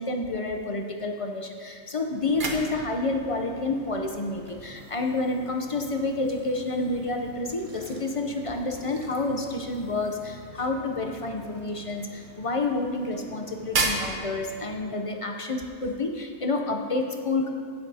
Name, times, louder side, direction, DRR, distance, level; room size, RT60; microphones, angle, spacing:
voice 1, 0.0-17.5, left 2 dB, 45° left, 3 dB, 0.4 m, -29 dB
water fountain, 2.0-15.0, right 3 dB, 45° right, 1.0 m, -37 dB
16.0 x 7.8 x 2.7 m, 2.2 s
omnidirectional pair, 1.3 m